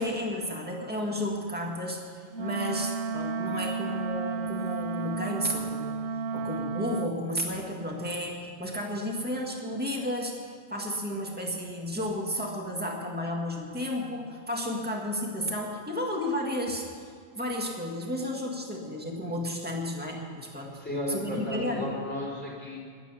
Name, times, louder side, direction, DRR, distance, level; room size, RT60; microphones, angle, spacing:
voice 1, 0.0-2.0 2.4-16.8 17.3-20.7 21.1-21.9, left 1 dB, 10° right, 0 dB, 1.7 m, -32 dB
Wind instrument woodwind instrument, 2.3-7.2, right 5 dB, 80° right, 1.2 m, -32 dB
voice 2, 20.7-22.8, left 1 dB, 10° left, -3 dB, 3.3 m, -34 dB
19.5 x 7.5 x 7.0 m, 2.1 s
omnidirectional pair, 1.2 m